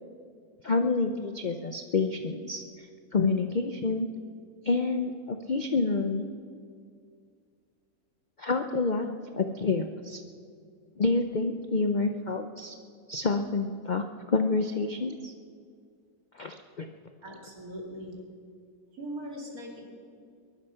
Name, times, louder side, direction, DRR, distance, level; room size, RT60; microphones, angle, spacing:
voice 1, 0.6-2.9 3.1-4.1 4.6-6.2 8.4-10.2 11.0-12.7 13.1-15.3 16.3-16.9, left 3 dB, 50° left, 6 dB, 0.5 m, -28 dB
voice 2, 17.2-18.2 18.9-19.8, right 1 dB, 65° right, 0 dB, 3.2 m, -40 dB
21.5 x 11.5 x 5.7 m, 2.2 s
omnidirectional pair, 1.6 m